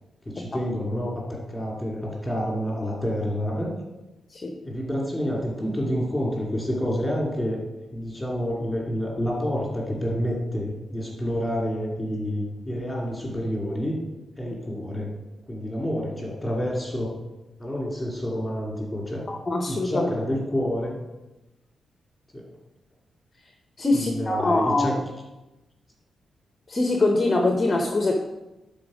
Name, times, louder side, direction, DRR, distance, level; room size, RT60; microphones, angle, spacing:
voice 1, 0.3-3.7 4.6-7.6 7.9-14.0 14.4-15.1 15.5-17.1 17.6-19.2 19.7-21.0 22.3-22.5 23.9-24.9, equal, 10° left, -2 dB, 2.4 m, -28 dB
voice 2, 19.3-20.1 23.8-25.0 26.7-28.1, left 2 dB, 25° left, 3 dB, 0.8 m, -23 dB
11.5 x 4.3 x 4.9 m, 1.0 s
wide cardioid pair, 145°, 0 cm